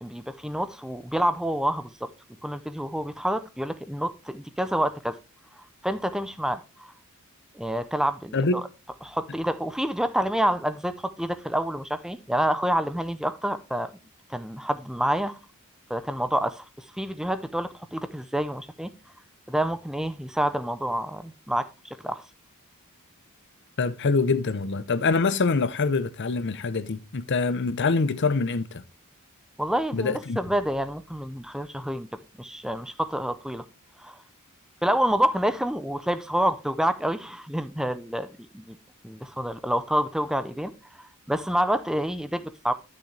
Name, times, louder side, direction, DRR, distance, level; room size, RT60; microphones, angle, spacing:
voice 1, 0.0-2.1 2.4-5.2 5.8-6.9 7.5-8.6 9.0-13.9 14.3-15.4 15.9-18.9 19.5-21.7 22.0-22.2 29.6-32.1 32.4-33.6 34.0-34.2 34.8-38.3 38.5-38.8 39.0-40.7 41.0-42.7, equal, 5° right, 0.5 m, -28 dB
voice 2, 23.8-28.8 29.9-30.4, left 4 dB, 55° left, 0.7 m, -25 dB
11.5 x 6.5 x 3.3 m
head